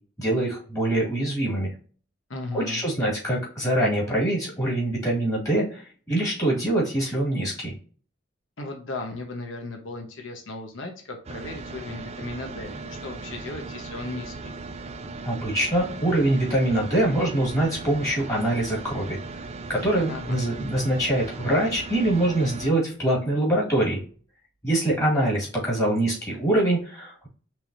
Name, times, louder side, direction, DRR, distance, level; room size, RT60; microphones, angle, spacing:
voice 1, 0.2-1.7 2.5-7.7 15.2-19.2 19.7-24.0 24.6-27.3, right 1 dB, 15° left, -4 dB, 2.2 m, -24 dB
voice 2, 2.3-2.8 8.6-14.6 20.1-20.4, left 2 dB, 80° left, 3 dB, 1.0 m, -36 dB
sound 1, 11.2-22.7, right 3 dB, 30° right, 0.4 m, -38 dB
5.7 x 3.5 x 2.7 m, 0.40 s
head